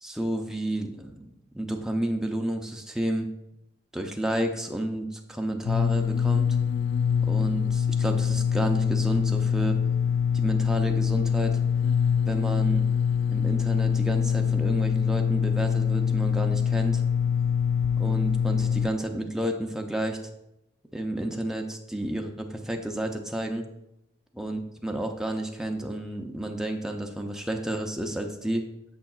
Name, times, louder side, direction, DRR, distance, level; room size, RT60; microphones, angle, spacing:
voice 1, 0.0-3.3 3.9-6.6 7.2-9.8 10.3-11.6 12.2-12.8 13.3-17.0 18.0-20.2 20.9-23.7 24.4-28.6, right 1 dB, 5° right, 2 dB, 0.6 m, -31 dB
sound 1, 5.7-18.9, left 7 dB, 75° left, 0.3 m, -24 dB
8.6 x 6.4 x 2.4 m, 0.86 s
head